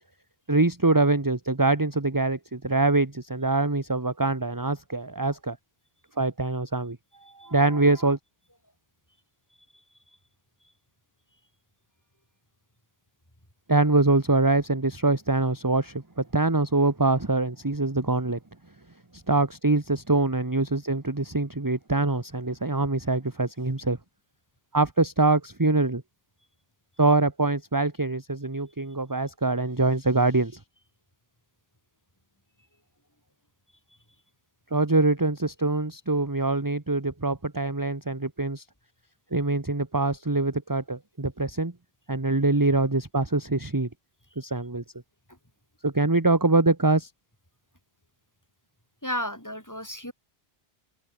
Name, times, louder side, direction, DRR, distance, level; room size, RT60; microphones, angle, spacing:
voice 1, 0.5-5.6 6.2-7.0 7.3-8.2 13.7-18.4 19.1-24.0 24.7-26.0 27.0-30.6 34.7-38.6 39.3-41.7 42.1-43.9 44.4-44.8 45.8-47.1, right 2 dB, 20° right, 1.4 m, -24 dB
voice 2, 49.0-50.1, equal, 15° left, 7.0 m, -33 dB
omnidirectional pair, 1.0 m